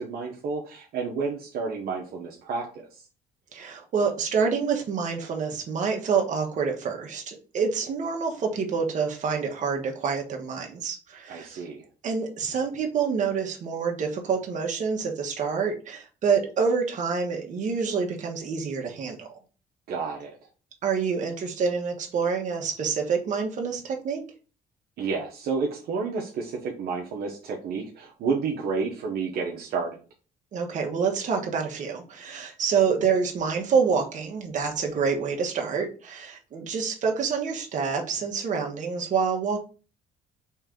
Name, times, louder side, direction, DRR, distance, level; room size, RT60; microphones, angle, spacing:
voice 1, 0.0-2.9 11.3-11.8 19.9-20.3 25.0-30.0, right 4 dB, 65° right, -1 dB, 0.9 m, -30 dB
voice 2, 3.5-11.6 12.0-19.3 20.8-24.2 30.5-39.6, right 5 dB, 45° right, 2 dB, 1.3 m, -27 dB
4.4 x 3.2 x 3.7 m, 0.36 s
cardioid pair, 110°, 17 cm